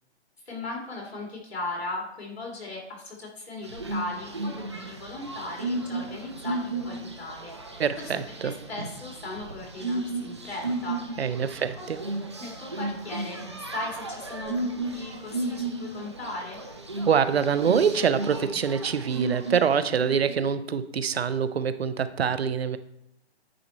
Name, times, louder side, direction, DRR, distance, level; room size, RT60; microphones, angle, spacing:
voice 1, 0.4-8.1 8.4-11.9 12.4-13.4 13.7-16.6, left 2 dB, 65° left, -2 dB, 3.1 m, -38 dB
sound 1, 3.6-20.3, right 2 dB, 25° right, 0.5 m, -34 dB
voice 2, 7.8-8.5 11.2-12.0 17.1-22.8, right 7 dB, 65° right, 13 dB, 0.7 m, -25 dB
9.1 x 4.0 x 4.4 m, 0.80 s
hypercardioid pair, 170°, 34 cm